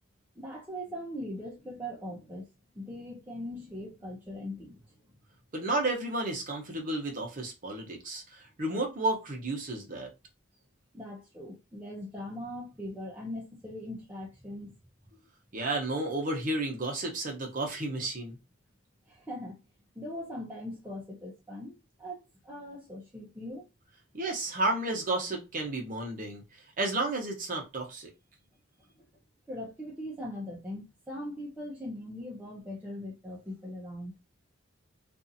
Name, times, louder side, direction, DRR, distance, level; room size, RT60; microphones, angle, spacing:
voice 1, 0.4-2.5 2.7-5.2 10.9-14.7 19.1-19.6 19.9-23.7 29.0-29.1 29.5-34.1, left 1 dB, 10° right, 0.6 m, -40 dB
voice 2, 5.5-10.1 15.5-18.4 24.1-26.4 26.8-28.1, right 2 dB, 40° right, 0.8 m, -32 dB
2.6 x 2.5 x 2.6 m
head